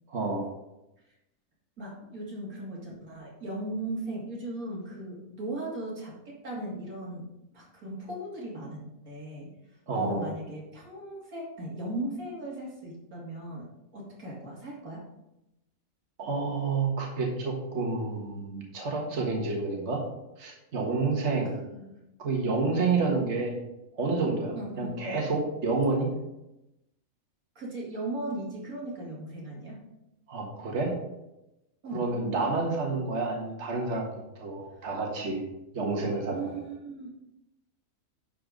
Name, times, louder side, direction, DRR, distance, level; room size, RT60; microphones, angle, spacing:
voice 1, 0.1-0.4 9.9-10.3 16.2-20.0 20.4-21.6 22.2-23.6 23.9-26.1 30.3-30.9 31.9-35.4 35.7-36.5, right 3 dB, 55° right, -1 dB, 1.9 m, -29 dB
voice 2, 1.8-9.5 9.9-15.0 21.7-22.0 22.9-23.1 24.5-25.0 27.5-29.8 31.8-32.0 36.3-37.1, right 1 dB, 90° right, -4 dB, 3.2 m, -37 dB
10.5 x 4.6 x 5.2 m, 0.91 s
omnidirectional pair, 1.5 m